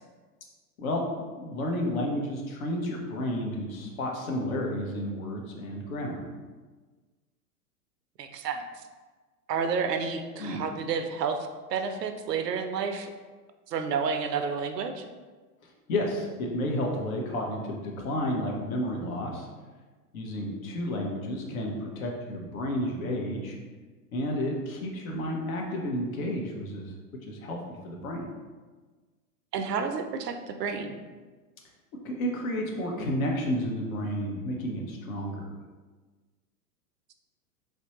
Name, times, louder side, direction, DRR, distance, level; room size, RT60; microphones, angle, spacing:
voice 1, 0.8-6.2 10.4-10.6 15.6-19.5 20.1-23.6 24.1-26.9 27.3-27.6 27.8-28.3 32.0-35.5, left 1 dB, 60° left, 0 dB, 0.9 m, -31 dB
voice 2, 8.2-8.6 9.5-13.1 13.7-15.0 29.5-31.0, right 5 dB, 80° right, 6 dB, 0.5 m, -30 dB
3.2 x 2.6 x 2.9 m, 1.4 s
hypercardioid pair, 110°, 48 cm